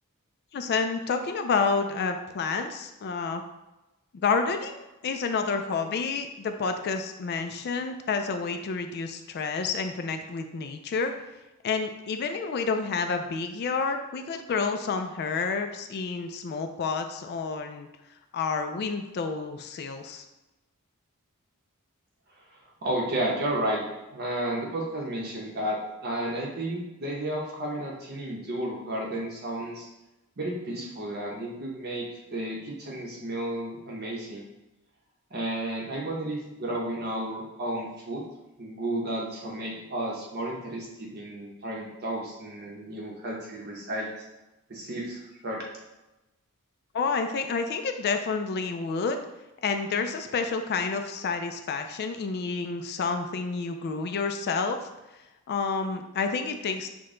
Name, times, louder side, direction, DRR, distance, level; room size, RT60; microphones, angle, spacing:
voice 1, 0.5-3.4 4.2-11.1 11.6-17.9 18.3-20.2 46.9-49.2 49.6-56.9, left 4 dB, 50° left, 7 dB, 0.3 m, -29 dB
voice 2, 22.8-29.9 30.4-34.4 35.3-38.2 38.6-44.1 44.7-45.7, right 1 dB, 50° right, -3 dB, 0.8 m, -32 dB
6.1 x 2.2 x 3.7 m, 1.0 s
head